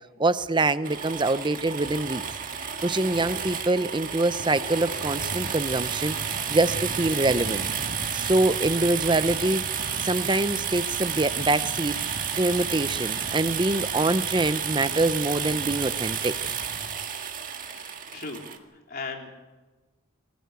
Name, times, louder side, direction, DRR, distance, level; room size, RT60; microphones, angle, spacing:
voice 1, 0.2-2.2 2.8-7.6 8.1-9.6 10.0-12.0 12.4-16.3, right 2 dB, 20° right, 13 dB, 0.6 m, -25 dB
sound 1, 0.8-18.6, right 7 dB, 40° right, 1.9 m, -31 dB
voice 2, 17.7-18.4 18.7-19.3, left 4 dB, 45° left, 2 dB, 3.4 m, -38 dB
24.5 x 16.0 x 8.2 m, 1.2 s
head